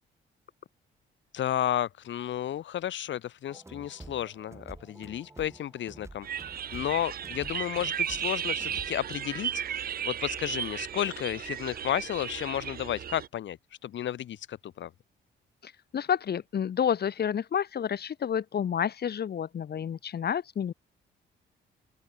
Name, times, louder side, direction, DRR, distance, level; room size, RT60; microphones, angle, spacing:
voice 1, 1.3-6.3 6.7-14.9, left 11 dB, 70° left, 2.5 m, -32 dB
sound 1, 3.5-9.2, right 2 dB, 15° right, 5.6 m, -49 dB
sound 2, 6.2-13.3, right 9 dB, 50° right, 0.8 m, -34 dB
voice 2, 15.6-20.7, left 8 dB, 55° left, 2.7 m, -30 dB
open air
cardioid pair, 90°, 20 cm